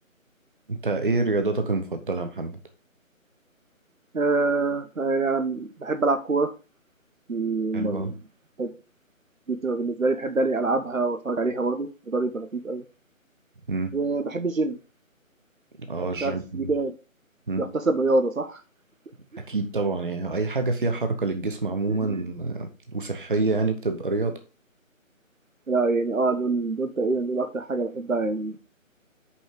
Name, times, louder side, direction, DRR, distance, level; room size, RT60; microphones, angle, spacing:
voice 1, 0.7-2.6 7.7-8.1 13.7-13.9 15.8-16.7 17.5-17.6 19.5-24.4, right 3 dB, 40° right, 7 dB, 0.8 m, -27 dB
voice 2, 4.1-6.5 7.3-8.1 8.6-8.7 9.5-12.8 13.9-14.8 16.2-16.9 17.6-18.6 19.3-19.4 21.9-22.2 25.7-28.6, right 3 dB, 75° right, 10 dB, 1.1 m, -25 dB
5.7 x 5.5 x 4.6 m, 0.33 s
figure-of-eight pair, 155°, 41 cm